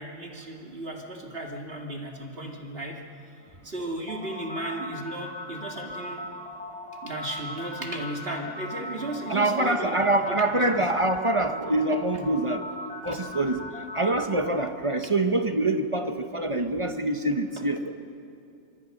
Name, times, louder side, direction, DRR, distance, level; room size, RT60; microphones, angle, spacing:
voice 1, 0.0-3.0 3.6-6.2 7.0-10.8 13.1-13.2, right 1 dB, 45° right, 1 dB, 2.3 m, -35 dB
sound 1, 4.1-14.7, left 1 dB, 5° left, 2.9 m, -38 dB
voice 2, 9.3-12.6 13.0-13.6 13.9-17.9, right 2 dB, 25° right, 7 dB, 1.0 m, -25 dB
25.0 x 23.5 x 6.5 m, 2.4 s
omnidirectional pair, 1.4 m